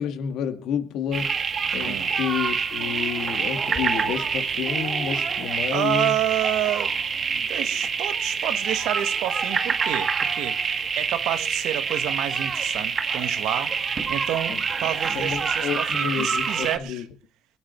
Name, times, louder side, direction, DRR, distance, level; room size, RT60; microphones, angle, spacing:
voice 1, 0.0-1.4 1.7-6.1 14.5-14.6 15.1-17.1, left 8 dB, 75° left, 2.2 m, -30 dB
sound 1, 1.1-16.8, right 6 dB, 35° right, 1.7 m, -26 dB
Explosion, 3.7-5.6, equal, 5° right, 3.0 m, -46 dB
voice 2, 5.7-13.7 14.1-17.0, right 12 dB, 85° right, 1.5 m, -29 dB
22.0 x 10.5 x 4.5 m
cardioid pair, 130°, 0 cm